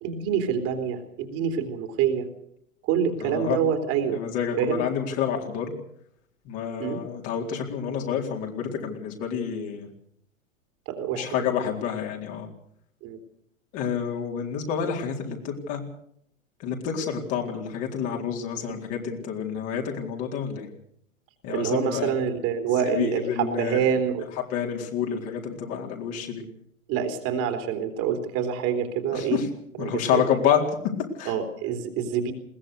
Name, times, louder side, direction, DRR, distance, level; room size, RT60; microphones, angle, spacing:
voice 1, 0.0-2.3 2.8-4.2 4.6-4.8 6.8-7.0 10.9-11.3 13.0-13.2 21.5-24.3 26.9-29.4 29.8-30.2 31.3-32.3, right 8 dB, 35° right, 6 dB, 3.5 m, -26 dB
voice 2, 3.2-3.6 4.1-5.7 6.5-9.9 11.1-12.5 13.7-15.8 16.6-20.7 21.4-22.1 22.8-23.9 24.5-26.4 29.1-29.5 29.8-30.7 31.2-31.3, left 8 dB, 35° left, 1 dB, 4.2 m, -28 dB
21.5 x 19.5 x 6.7 m, 0.70 s
figure-of-eight pair, 100°, 40 cm